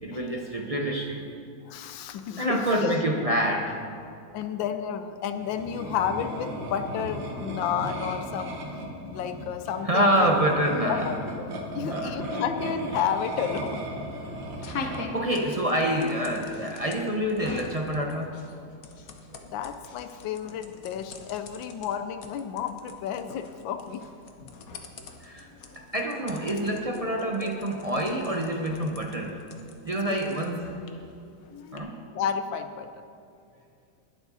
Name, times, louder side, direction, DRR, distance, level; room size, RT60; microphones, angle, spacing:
voice 1, 0.0-1.2 2.4-3.8 9.8-11.1 11.7-12.2 14.7-18.4 25.2-25.5 25.8-29.5 29.8-30.8 31.7-32.0, right 1 dB, 40° right, 1 dB, 0.5 m, -27 dB
voice 2, 1.6-2.9 4.3-8.6 9.1-10.4 10.8-11.2 11.7-13.8 19.4-24.1 30.1-30.3 30.7-30.9 32.1-32.9, left 8 dB, 85° left, 8 dB, 1.4 m, -31 dB
sound 1, 5.3-15.0, right 1 dB, 80° right, 2.1 m, -36 dB
sound 2, 12.2-31.8, left 4 dB, 55° left, 1.2 m, -44 dB
20.5 x 7.2 x 4.1 m, 2.5 s
omnidirectional pair, 2.0 m